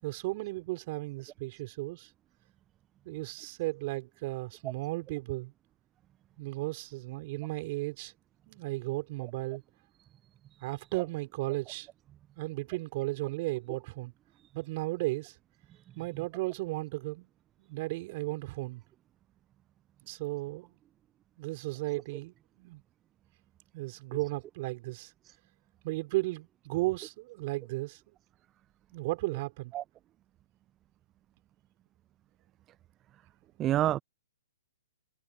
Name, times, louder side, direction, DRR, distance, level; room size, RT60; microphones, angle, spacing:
voice 1, 0.0-2.1 3.0-5.5 6.4-8.1 8.5-9.6 10.6-11.9 12.4-14.1 14.5-15.4 16.0-17.3 17.6-18.8 20.1-20.8 21.4-22.8 23.7-25.1 25.8-28.1 28.9-29.7, right 21 dB, 40° right, 5.4 m, -35 dB
voice 2, 10.5-11.1 14.4-14.5 15.7-16.3 24.2-24.3 25.2-25.4 29.3-29.4 29.7-29.8 33.6-34.0, right 13 dB, 25° right, 0.9 m, -33 dB
figure-of-eight pair, 120°, 0 cm